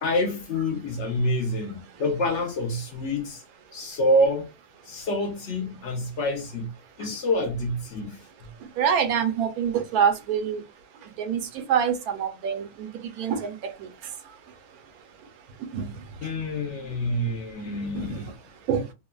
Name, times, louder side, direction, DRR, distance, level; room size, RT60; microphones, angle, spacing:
voice 1, 0.0-3.4 3.7-4.5 4.9-6.7 7.0-8.2 16.2-18.3, left 1 dB, 60° left, 0.9 m, -27 dB
voice 2, 8.8-10.6 11.2-11.4 11.7-12.9 13.2-13.6 15.7-15.8 17.9-18.2 18.7-18.8, right 7 dB, 80° right, 1.1 m, -25 dB
3.1 x 2.1 x 2.2 m
omnidirectional pair, 1.5 m